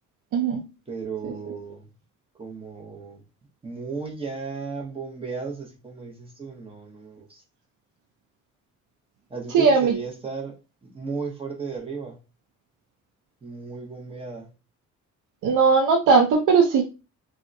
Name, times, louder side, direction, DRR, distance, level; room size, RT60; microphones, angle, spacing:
voice 1, 0.9-1.9 2.4-3.2 3.6-7.4 9.3-12.2 13.4-14.5, right 4 dB, 20° right, 0.7 m, -35 dB
voice 2, 9.5-9.9 15.4-16.8, right 5 dB, 85° right, 0.5 m, -18 dB
3.5 x 2.1 x 2.5 m
cardioid pair, 140°, 30 cm